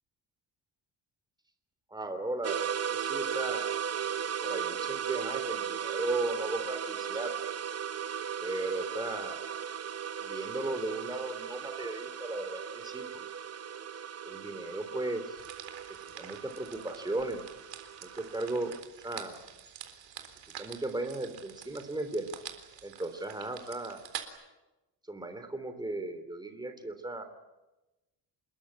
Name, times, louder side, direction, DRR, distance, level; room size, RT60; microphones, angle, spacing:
voice 1, 1.9-3.7 4.4-7.3 8.4-9.4 10.2-13.3 14.2-15.4 16.2-17.4 18.0-19.4 20.6-22.3 22.8-24.0 25.1-27.2, right 2 dB, 10° right, 8 dB, 3.4 m, -36 dB
sound 1, 2.4-18.8, right 8 dB, 35° right, 0.9 m, -37 dB
sound 2, 15.4-24.3, right 10 dB, 75° right, 3.9 m, -47 dB
28.0 x 21.5 x 8.8 m, 1.0 s
cardioid pair, 135°, 45 cm